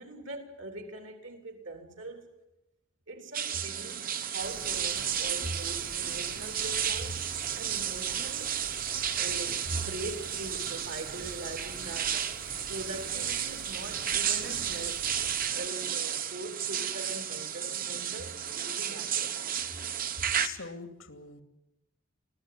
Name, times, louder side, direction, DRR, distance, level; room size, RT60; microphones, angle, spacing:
voice 1, 0.0-2.3 3.1-7.2 7.5-8.6 9.1-12.3 12.7-15.1 15.5-19.5, right 1 dB, 65° right, 3.6 m, -41 dB
sound 1, 3.3-20.5, right 9 dB, 45° right, 1.2 m, -33 dB
sound 2, 4.4-15.5, right 2 dB, 85° right, 7.9 m, -47 dB
voice 2, 20.3-21.4, left 6 dB, 80° left, 2.7 m, -42 dB
24.5 x 16.5 x 9.5 m
head